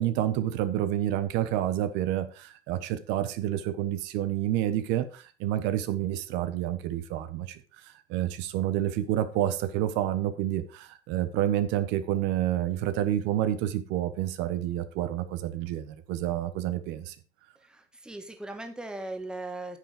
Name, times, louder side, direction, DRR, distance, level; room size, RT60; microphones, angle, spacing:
voice 1, 0.0-7.6 8.1-17.1, right 12 dB, 75° right, 11 dB, 1.3 m, -29 dB
voice 2, 17.6-19.8, right 2 dB, 5° right, 6 dB, 1.4 m, -38 dB
9.8 x 7.4 x 5.0 m, 0.35 s
cardioid pair, 150°, 18 cm